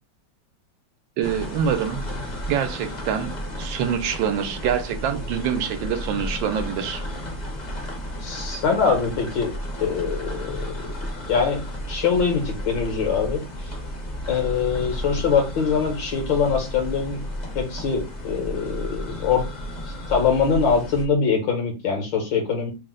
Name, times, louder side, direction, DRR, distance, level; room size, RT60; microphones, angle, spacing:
sound 1, 1.2-21.1, equal, 40° left, 0.6 m, -33 dB
voice 1, 1.2-2.0 2.5-3.3 3.6-7.0, right 8 dB, 85° right, 9 dB, 1.3 m, -25 dB
voice 2, 8.2-9.5 9.8-11.0 11.3-11.6 11.9-13.7 14.3-17.3 17.6-19.4 20.1-22.7, left 6 dB, 80° left, 2 dB, 2.0 m, -23 dB
4.0 x 2.1 x 3.7 m, 0.29 s
omnidirectional pair, 2.0 m